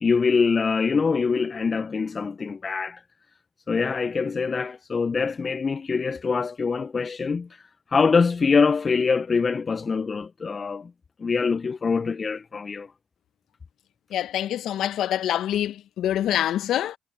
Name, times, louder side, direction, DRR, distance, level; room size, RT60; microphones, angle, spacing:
voice 1, 0.0-3.0 3.7-7.5 7.9-10.9 11.2-12.9, left 5 dB, 40° left, 0.9 m, -24 dB
voice 2, 14.1-17.0, left 11 dB, 70° left, 1.7 m, -25 dB
hypercardioid pair, 45°, 0 cm